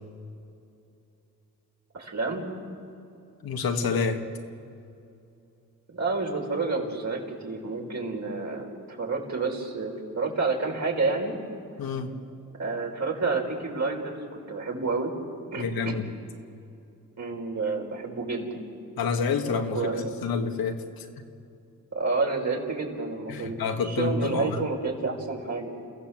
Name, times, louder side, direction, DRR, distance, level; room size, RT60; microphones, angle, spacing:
voice 1, 1.9-2.5 5.9-11.3 12.6-15.1 15.5-15.6 17.2-18.6 19.7-20.2 21.9-23.6 23.9-25.7, right 3 dB, 50° right, 0 dB, 5.8 m, -29 dB
voice 2, 3.4-4.2 11.8-12.2 15.6-16.1 19.0-21.1 23.3-24.6, left 5 dB, 75° left, 4 dB, 2.1 m, -28 dB
29.5 x 16.0 x 7.6 m, 2.7 s
supercardioid pair, 55°, 36 cm